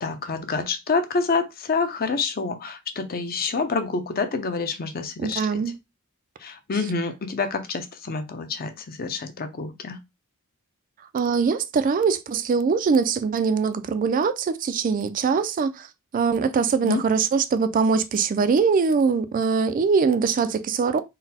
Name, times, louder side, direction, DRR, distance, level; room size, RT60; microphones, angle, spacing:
voice 1, 0.0-5.6 6.4-10.0 16.8-17.0, left 4 dB, 45° left, 0.6 m, -27 dB
voice 2, 5.2-5.8 11.1-15.9 16.1-21.0, right 5 dB, 40° right, 0.3 m, -22 dB
3.9 x 2.1 x 4.1 m
head